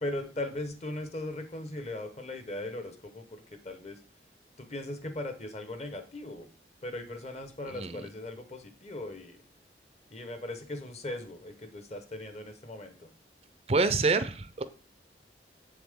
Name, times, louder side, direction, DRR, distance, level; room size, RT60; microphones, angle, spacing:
voice 1, 0.0-4.0 4.6-6.5 6.8-9.4 10.1-13.1, left 1 dB, 35° left, 8 dB, 1.1 m, -38 dB
voice 2, 13.7-14.7, right 3 dB, 35° right, 12 dB, 0.5 m, -26 dB
7.6 x 7.0 x 3.7 m, 0.37 s
head